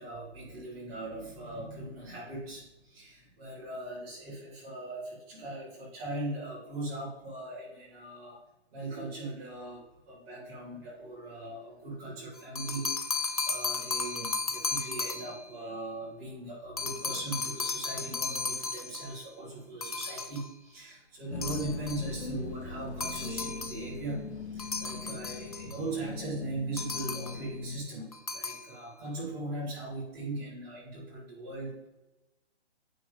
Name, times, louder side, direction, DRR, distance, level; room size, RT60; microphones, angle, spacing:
voice 1, 0.0-8.4 8.7-31.9, right 2 dB, 15° right, -7 dB, 2.1 m, -39 dB
sound 1, 12.4-15.5 16.8-19.2 19.8-20.5 21.4-22.1 23.0-23.9 24.6-25.8 26.8-27.5 28.1-28.7, left 4 dB, 35° left, 0.4 m, -35 dB
sound 2, 21.3-27.8, left 4 dB, 75° left, 1.4 m, -40 dB
9.3 x 3.2 x 5.0 m, 0.98 s
hypercardioid pair, 170°, 34 cm